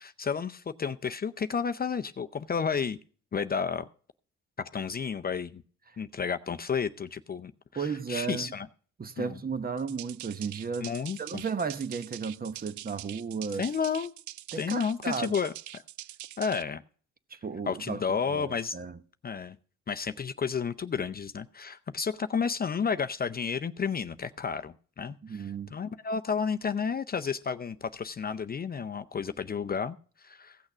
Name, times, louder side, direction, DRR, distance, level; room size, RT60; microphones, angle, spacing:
voice 1, 0.0-3.0 3.3-3.9 4.6-5.6 6.0-8.7 9.2-9.4 10.8-11.4 13.6-14.1 14.6-15.5 16.4-16.8 17.7-18.8 19.2-19.6 19.9-30.6, left 6 dB, 30° left, 0.6 m, -32 dB
voice 2, 7.8-8.5 9.0-10.9 11.2-13.7 14.5-15.3 17.3-18.0 18.3-19.0 25.2-25.7, right 5 dB, 30° right, 0.9 m, -34 dB
sound 1, 9.8-16.6, right 14 dB, 70° right, 0.5 m, -44 dB
16.0 x 6.4 x 6.0 m
cardioid pair, 90°, 30 cm